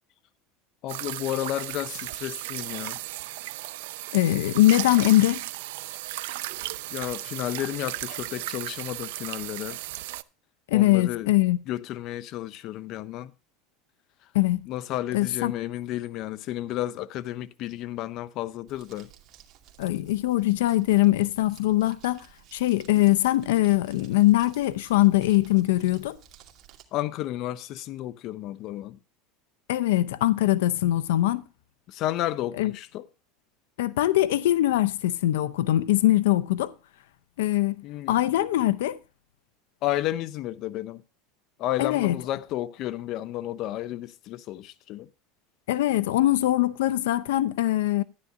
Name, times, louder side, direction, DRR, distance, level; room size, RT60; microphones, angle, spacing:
voice 1, 0.8-3.0 6.9-9.8 10.7-11.3 11.7-13.3 14.7-19.1 26.9-29.0 31.3-31.4 31.9-33.0 37.8-38.2 39.8-41.0 41.6-45.1, left 13 dB, 50° left, 0.6 m, -32 dB
sound 1, 0.9-10.2, right 17 dB, 80° right, 0.5 m, -35 dB
voice 2, 4.1-5.4 10.7-11.6 14.3-14.7 15.1-15.5 19.8-22.3 22.5-26.2 29.7-31.4 32.6-32.7 33.8-36.7 37.4-37.8 38.1-39.0 41.8-42.2 45.7-48.0, left 15 dB, 90° left, 0.6 m, -22 dB
Crumpling crinkling, 18.7-26.8, right 11 dB, 45° right, 2.4 m, -54 dB
13.0 x 10.5 x 2.6 m
supercardioid pair, 140°, 0 cm